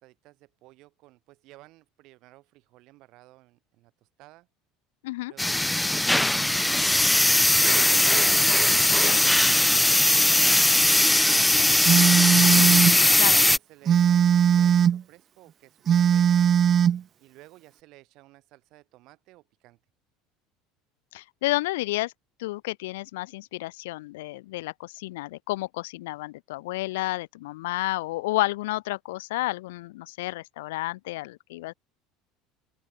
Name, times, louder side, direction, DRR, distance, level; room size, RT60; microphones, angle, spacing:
voice 1, 0.0-4.5 5.3-7.0 7.4-8.2 9.1-12.3 13.2-14.2 14.6-16.5 17.2-19.8, right 19 dB, 60° right, 7.2 m, -54 dB
sound 1, 5.4-13.6, left 1 dB, 5° left, 0.4 m, -20 dB
Telephone, 11.9-13.0 13.9-15.0 15.9-17.0, right 9 dB, 40° right, 0.8 m, -19 dB
voice 2, 21.1-22.1 22.4-31.7, left 19 dB, 70° left, 0.7 m, -31 dB
open air
hypercardioid pair, 70°, 0 cm